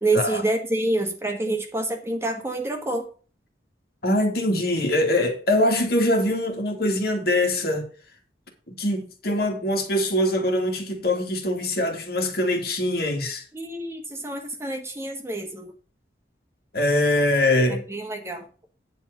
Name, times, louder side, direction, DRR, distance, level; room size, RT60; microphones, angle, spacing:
voice 1, 0.0-3.0 13.5-15.7 17.9-18.4, right 2 dB, 15° right, 1.5 m, -27 dB
voice 2, 4.0-7.8 8.7-13.4 16.7-17.8, left 1 dB, 60° left, 2.3 m, -23 dB
9.8 x 4.7 x 6.6 m
head